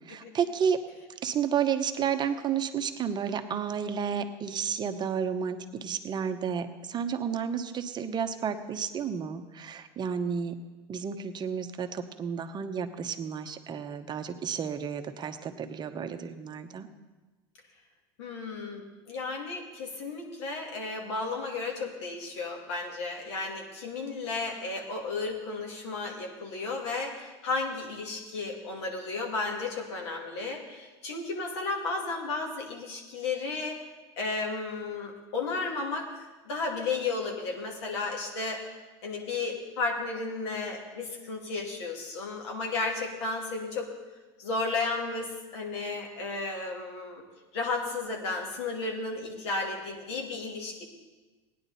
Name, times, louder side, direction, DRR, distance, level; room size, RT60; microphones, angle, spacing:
voice 1, 0.1-0.8 1.2-10.6 10.9-16.9, right 7 dB, 30° right, 7 dB, 0.8 m, -31 dB
voice 2, 18.2-33.8 34.2-43.9 44.4-47.2 47.5-50.8, left 3 dB, 80° left, 0 dB, 2.4 m, -33 dB
16.5 x 10.0 x 4.1 m, 1.2 s
supercardioid pair, 105°, 14 cm